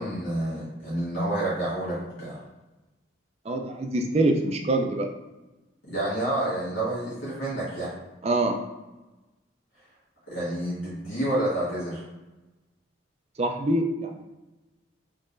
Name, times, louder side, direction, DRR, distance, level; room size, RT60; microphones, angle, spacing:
voice 1, 0.0-2.4 5.8-7.9 10.3-12.0, right 1 dB, 85° left, -9 dB, 1.5 m, -29 dB
voice 2, 3.5-5.1 8.2-8.6 13.4-14.2, right 2 dB, 30° right, 4 dB, 0.3 m, -25 dB
3.6 x 3.2 x 2.5 m, 1.1 s
head